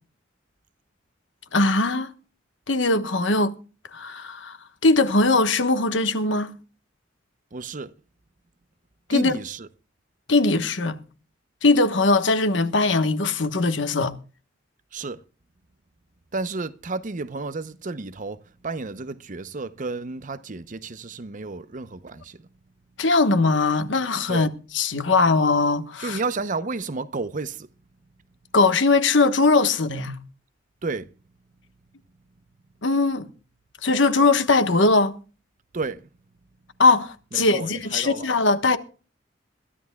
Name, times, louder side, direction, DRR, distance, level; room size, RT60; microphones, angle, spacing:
voice 1, 1.5-2.1 2.7-3.5 3.9-4.6 4.8-6.5 9.1-9.3 10.3-11.0 11.6-14.1 23.0-24.5 24.7-26.2 28.5-30.2 32.8-33.3 33.8-35.2 36.8-38.8, left 3 dB, 70° left, 1.3 m, -20 dB
voice 2, 7.5-7.9 9.1-9.7 14.9-15.2 16.3-22.5 24.3-24.5 26.0-27.7 30.8-31.1 35.7-36.1 37.3-38.3, right 3 dB, 45° right, 0.7 m, -32 dB
22.0 x 13.5 x 2.3 m
head